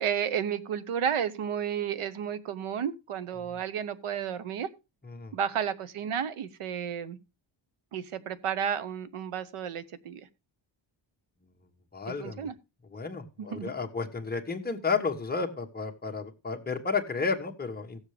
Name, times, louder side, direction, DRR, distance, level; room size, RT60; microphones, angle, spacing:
voice 1, 0.0-4.7 5.3-7.2 7.9-10.3 12.1-12.5 13.4-13.7, right 8 dB, 90° right, 1.0 m, -32 dB
voice 2, 11.9-12.5 12.9-18.0, left 4 dB, 20° left, 1.3 m, -32 dB
16.5 x 7.3 x 3.2 m
wide cardioid pair, 165°, 49 cm